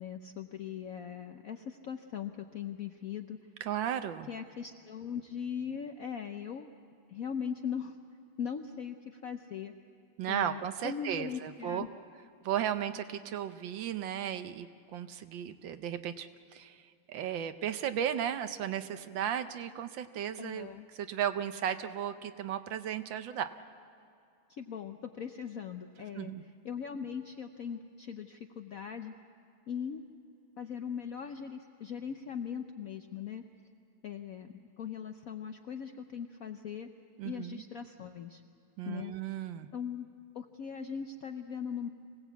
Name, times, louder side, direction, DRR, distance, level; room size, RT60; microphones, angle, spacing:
voice 1, 0.0-3.4 4.3-6.7 7.1-8.0 8.4-9.7 10.3-11.9 20.4-20.8 24.6-26.3 26.6-29.1 29.7-30.0 30.6-33.4 34.0-36.9 37.2-38.4 38.8-39.1 39.7-40.1 40.3-41.9, left 7 dB, 65° left, 6 dB, 0.8 m, -40 dB
voice 2, 3.6-4.3 10.2-11.9 12.4-23.5 26.1-26.4 37.2-37.6 38.8-39.7, right 9 dB, 70° right, 10 dB, 1.4 m, -35 dB
25.5 x 17.5 x 8.2 m, 2.5 s
omnidirectional pair, 2.3 m